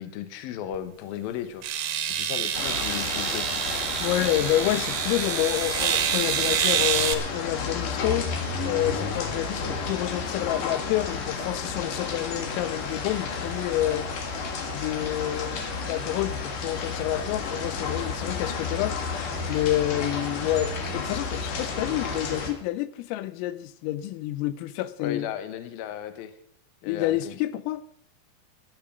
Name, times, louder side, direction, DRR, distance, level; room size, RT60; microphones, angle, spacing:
voice 1, 0.0-1.6 2.1-3.5 25.0-26.3 26.8-27.3, left 10 dB, 70° left, 2.3 m, -35 dB
sound 1, 0.7-0.8 1.6-7.1, right 10 dB, 65° right, 2.8 m, -27 dB
sound 2, 2.5-22.5, left 4 dB, 55° left, 2.6 m, -32 dB
voice 2, 4.0-8.3 8.6-14.1 14.7-19.0 19.5-25.3 26.9-27.8, left 14 dB, 90° left, 3.4 m, -28 dB
15.5 x 11.0 x 5.1 m
omnidirectional pair, 5.8 m